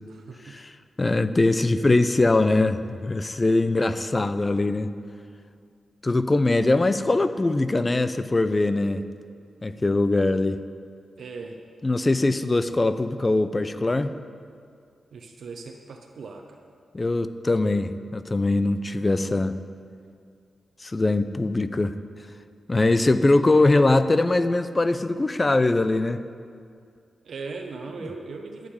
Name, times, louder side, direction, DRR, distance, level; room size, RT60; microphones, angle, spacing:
voice 1, 0.1-0.6 11.2-11.6 15.1-16.6 27.2-28.7, right 4 dB, 75° right, 2 dB, 0.9 m, -38 dB
voice 2, 1.0-4.9 6.0-9.1 9.6-10.6 11.8-14.2 16.9-19.6 20.8-22.0 22.7-26.2, left 2 dB, 25° left, 11 dB, 0.5 m, -22 dB
11.5 x 6.5 x 9.6 m, 2.3 s
wide cardioid pair, 125°, 0 cm